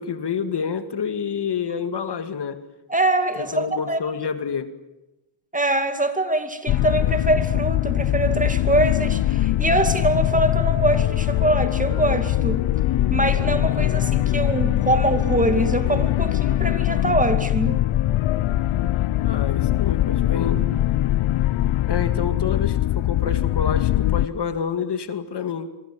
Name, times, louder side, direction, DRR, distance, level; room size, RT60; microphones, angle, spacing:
voice 1, 0.0-2.6 3.4-4.7 19.2-20.6 21.9-25.7, left 6 dB, 60° left, 2.1 m, -28 dB
voice 2, 2.9-4.0 5.5-12.6 13.1-17.8, right 2 dB, 15° right, 2.4 m, -23 dB
sound 1, 6.7-24.3, left 14 dB, 80° left, 0.9 m, -22 dB
26.0 x 24.0 x 7.5 m
cardioid pair, 90°, 47 cm